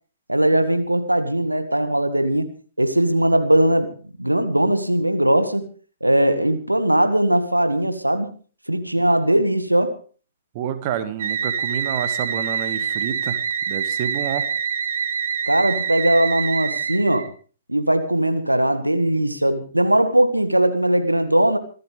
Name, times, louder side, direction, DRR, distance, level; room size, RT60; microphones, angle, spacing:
voice 1, 0.3-2.5 2.8-3.9 4.2-5.6 6.0-8.3 8.7-10.0 15.5-17.3 17.7-21.6, right 1 dB, 85° right, 9 dB, 1.7 m, -19 dB
voice 2, 10.5-13.4 13.7-14.5, right 9 dB, 40° right, 10 dB, 1.9 m, -28 dB
sound 1, 11.2-17.3, right 7 dB, 55° right, 2.1 m, -26 dB
25.5 x 13.0 x 3.4 m, 0.38 s
figure-of-eight pair, 115°, 0 cm